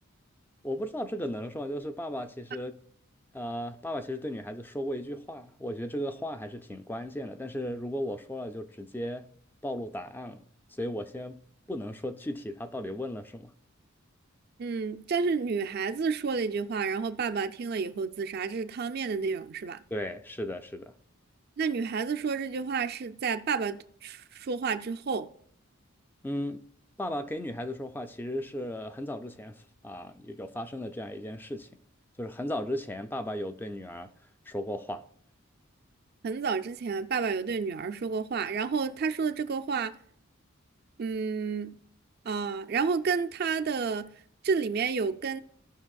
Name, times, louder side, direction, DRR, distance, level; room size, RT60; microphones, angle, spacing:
voice 1, 0.6-2.8 3.3-9.3 9.6-10.5 10.8-11.4 11.7-13.5 19.9-20.9 26.2-26.7 27.0-29.6 29.8-31.7 32.2-34.1 34.5-35.0, left 1 dB, 10° left, 0.4 m, -35 dB
voice 2, 14.6-19.8 21.6-25.3 36.2-40.0 41.0-41.8 42.2-44.1 44.4-45.4, right 5 dB, 50° right, 0.4 m, -30 dB
16.0 x 5.9 x 2.3 m
head